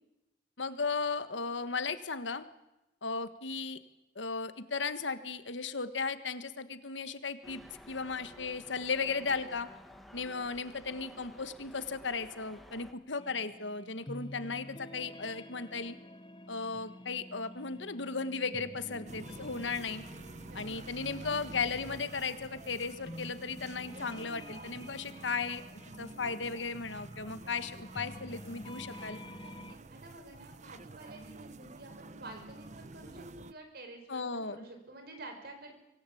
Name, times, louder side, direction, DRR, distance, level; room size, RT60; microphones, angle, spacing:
voice 1, 0.6-2.4 3.0-3.8 4.1-7.6 7.9-9.7 10.1-16.0 16.5-20.0 20.5-25.6 26.0-29.2 34.1-34.6, left 4 dB, 80° left, 11 dB, 1.5 m, -36 dB
sound 1, 7.4-12.9, equal, ahead, 1.7 m, -53 dB
sound 2, 13.2-29.7, left 1 dB, 25° left, 0.9 m, -49 dB
voice 2, 18.8-19.5 20.5-20.6 21.0-21.6 29.4-35.7, right 2 dB, 60° right, 5 dB, 5.2 m, -50 dB
sound 3, 19.1-33.5, right 3 dB, 40° right, 0.8 m, -49 dB
25.0 x 17.5 x 8.5 m, 0.97 s
head